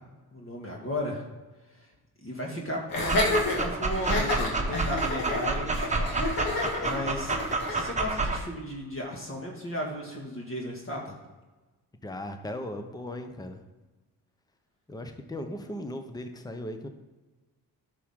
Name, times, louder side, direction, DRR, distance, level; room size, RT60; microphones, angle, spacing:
voice 1, 0.3-1.2 1.8-1.9 2.2-6.2 6.5-7.4 7.7-11.1, left 1 dB, 35° left, -1 dB, 2.0 m, -35 dB
Laughter, 2.9-7.9, left 2 dB, 60° left, 2.2 m, -29 dB
Dog, 2.9-8.4, right 3 dB, 20° right, 1.2 m, -29 dB
voice 2, 12.0-13.6 14.9-16.9, left 1 dB, 10° left, 7 dB, 0.9 m, -37 dB
11.0 x 6.2 x 3.7 m, 1.2 s
cardioid pair, 85°, 38 cm